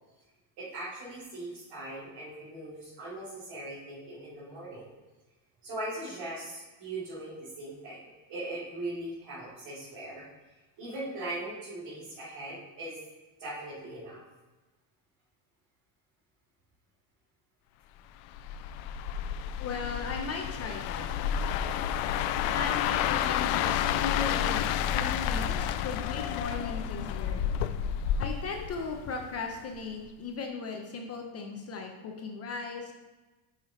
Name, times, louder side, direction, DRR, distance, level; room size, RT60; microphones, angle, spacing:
voice 1, 0.6-4.9 5.6-10.2 10.8-13.0 13.4-14.2, right 1 dB, 50° right, -10 dB, 2.7 m, -40 dB
sound 1, 18.3-29.4 29.8-30.1, left 9 dB, 90° left, 0.6 m, -30 dB
voice 2, 19.6-21.1 22.5-27.4 28.2-32.9, left 4 dB, 30° left, 3 dB, 0.6 m, -37 dB
6.0 x 5.8 x 5.0 m, 1.2 s
cardioid pair, 160°, 50 cm